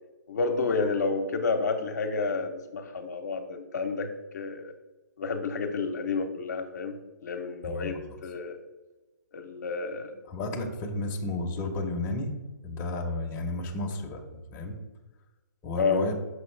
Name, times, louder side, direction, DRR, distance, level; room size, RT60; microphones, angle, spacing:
voice 1, 0.3-4.7 5.2-8.6 9.3-10.1 15.8-16.1, left 4 dB, 65° left, 5 dB, 0.8 m, -30 dB
voice 2, 7.6-8.2 10.3-12.3 12.6-14.8 15.6-16.1, left 2 dB, 20° left, 2 dB, 0.8 m, -32 dB
6.4 x 5.3 x 3.2 m, 1.1 s
hypercardioid pair, 145°, 10 cm